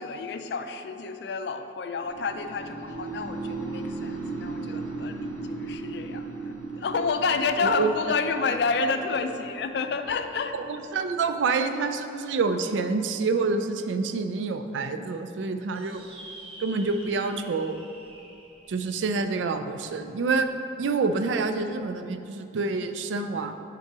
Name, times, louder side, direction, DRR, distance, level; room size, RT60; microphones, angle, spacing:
voice 1, 0.0-10.5, left 4 dB, 65° left, 8 dB, 0.3 m, -29 dB
sound 1, 2.0-12.0, right 3 dB, 5° left, 0.8 m, -37 dB
voice 2, 7.6-7.9 10.5-16.0 16.6-17.8 18.7-20.5 20.8-23.5, right 4 dB, 85° right, 8 dB, 0.4 m, -27 dB
sound 2, 15.7-20.5, right 1 dB, 30° right, 0.6 m, -48 dB
5.4 x 3.9 x 4.7 m, 2.8 s
head